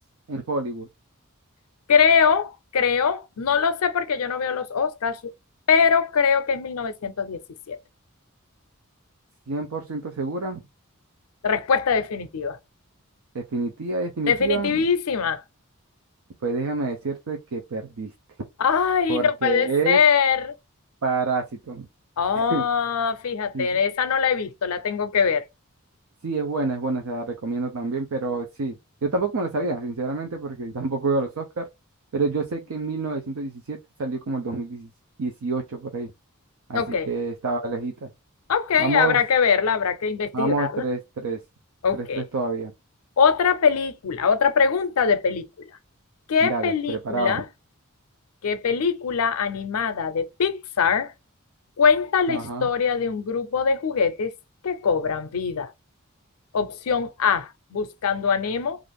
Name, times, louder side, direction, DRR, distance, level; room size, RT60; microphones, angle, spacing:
voice 1, 0.3-0.9 9.5-10.6 13.3-14.9 16.4-18.1 19.1-20.0 21.0-21.9 22.3-22.6 23.5-23.7 26.2-31.7 32.1-34.9 35.2-36.1 36.7-38.1 38.8-39.2 40.3-41.4 41.9-42.7 46.4-47.4 52.3-52.7, right 3 dB, 75° right, 0.5 m, -28 dB
voice 2, 1.9-5.2 5.7-7.4 7.7-7.8 11.4-12.6 14.3-15.4 18.6-20.5 22.2-25.4 36.7-37.1 38.5-40.8 41.8-42.2 43.2-45.5 46.3-47.4 48.4-51.1 51.8-54.3 54.6-55.7 56.5-58.8, left 6 dB, 80° left, 0.5 m, -22 dB
2.5 x 2.4 x 3.4 m
head